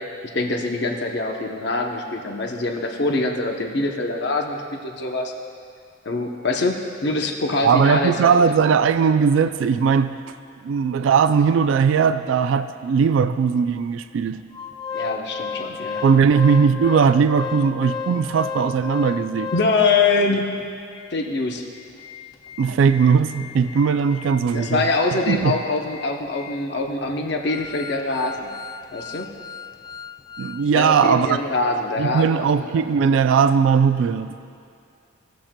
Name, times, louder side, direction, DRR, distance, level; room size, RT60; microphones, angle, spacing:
voice 1, 0.3-5.3 6.1-8.5 14.9-16.0 19.5-20.5 21.1-21.6 24.5-28.5 28.9-29.3 30.7-32.4 32.7-32.9, left 3 dB, 55° left, 2 dB, 0.7 m, -24 dB
voice 2, 7.6-10.3 10.6-14.4 16.0-19.5 22.6-24.9 25.3-25.6 30.4-31.4 32.0-34.3, right 6 dB, 75° right, 12 dB, 0.3 m, -19 dB
Organ, 14.5-20.1 20.6-20.7 20.9-21.1 21.6-31.2 31.5-31.6, left 5 dB, 20° left, 0.3 m, -35 dB
17.0 x 7.4 x 2.2 m, 2.4 s
head